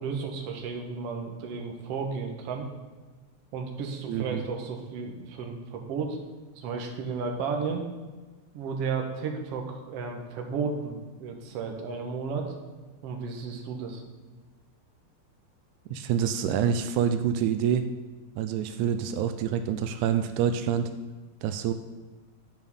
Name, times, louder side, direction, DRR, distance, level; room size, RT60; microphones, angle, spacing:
voice 1, 0.0-2.7 3.5-6.2 6.6-7.8 8.5-12.5 13.0-14.0, right 5 dB, 60° right, 3 dB, 1.9 m, -33 dB
voice 2, 4.1-4.4 15.9-17.9 18.4-20.9 21.4-21.7, right 8 dB, 85° right, 8 dB, 2.0 m, -27 dB
10.5 x 5.3 x 5.4 m, 1.3 s
omnidirectional pair, 3.4 m